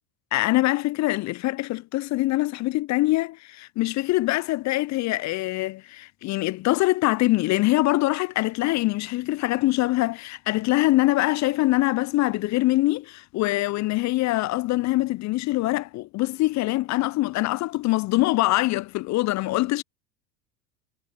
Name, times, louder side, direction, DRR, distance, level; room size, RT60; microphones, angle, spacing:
voice 1, 0.3-19.8, left 19 dB, 35° left, 0.6 m, -24 dB
figure-of-eight pair, 75°, 49 cm